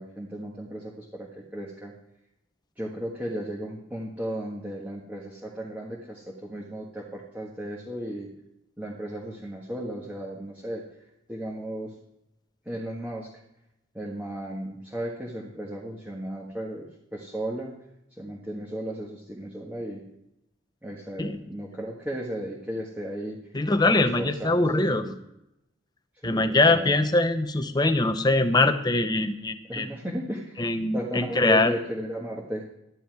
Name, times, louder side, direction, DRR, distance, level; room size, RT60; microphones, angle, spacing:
voice 1, 0.0-1.9 2.8-8.3 8.8-10.8 11.3-11.9 12.6-13.3 13.9-17.8 18.2-20.0 20.8-23.4 23.9-25.2 26.2-27.0 29.6-30.6 30.9-32.7, equal, 10° right, -4 dB, 1.6 m, -35 dB
voice 2, 23.5-25.0 26.2-29.9 30.6-31.7, left 2 dB, 20° left, 9 dB, 0.8 m, -23 dB
12.0 x 10.0 x 4.7 m, 0.84 s
head